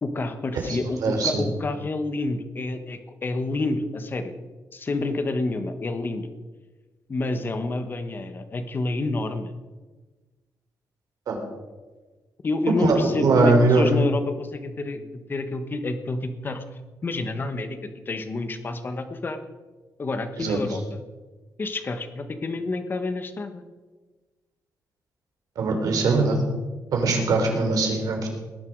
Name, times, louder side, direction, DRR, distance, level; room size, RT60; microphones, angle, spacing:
voice 1, 0.0-4.3 4.7-6.3 7.1-9.5 12.4-16.6 17.0-17.8 18.0-19.4 20.0-21.0 21.6-23.6, left 2 dB, 30° left, 9 dB, 1.3 m, -28 dB
voice 2, 0.7-1.3 11.3-11.4 12.8-13.9 20.4-20.6 25.6-26.4 26.9-28.3, right 3 dB, 70° right, 3 dB, 3.6 m, -21 dB
19.0 x 10.5 x 4.7 m, 1.3 s
cardioid pair, 135°, 6 cm